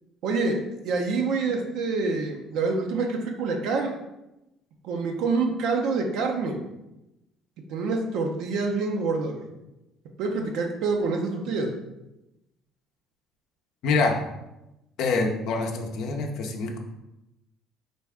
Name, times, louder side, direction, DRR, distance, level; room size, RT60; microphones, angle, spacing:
voice 1, 0.2-3.9 4.8-6.6 7.7-9.5 10.2-11.7, right 4 dB, 75° right, 2 dB, 0.5 m, -26 dB
voice 2, 13.8-14.2 15.0-16.8, left 3 dB, 70° left, 2 dB, 0.5 m, -25 dB
4.0 x 2.3 x 3.4 m, 0.93 s
cardioid pair, 100°, 0 cm